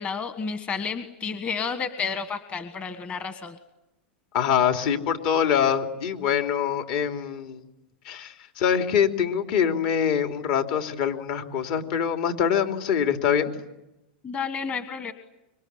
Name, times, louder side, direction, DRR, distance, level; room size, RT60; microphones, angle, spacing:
voice 1, 0.0-3.6 14.2-15.1, left 5 dB, 20° left, 9 dB, 1.5 m, -31 dB
voice 2, 4.3-7.6 8.0-13.5, left 8 dB, 55° left, 5 dB, 3.1 m, -24 dB
26.0 x 23.5 x 9.6 m, 0.91 s
supercardioid pair, 140°, 6 cm